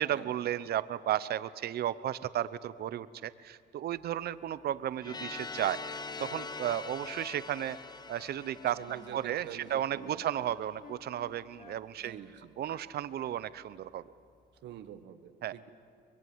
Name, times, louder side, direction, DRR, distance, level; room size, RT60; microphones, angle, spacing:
voice 1, 0.0-5.8 6.2-7.8 8.1-8.8 9.1-12.2 12.6-14.0 15.4-15.5, right 11 dB, 60° right, 15 dB, 0.8 m, -34 dB
sound 1, 5.0-9.9, left 4 dB, 25° left, 0.9 m, -43 dB
Wind instrument woodwind instrument, 7.8-13.4, left 4 dB, 55° left, 3.9 m, -55 dB
voice 2, 8.7-10.5 12.0-12.5 14.6-15.7, right 10 dB, 80° right, 10 dB, 1.5 m, -47 dB
23.5 x 21.5 x 9.5 m, 2.2 s
cardioid pair, 105°, 18 cm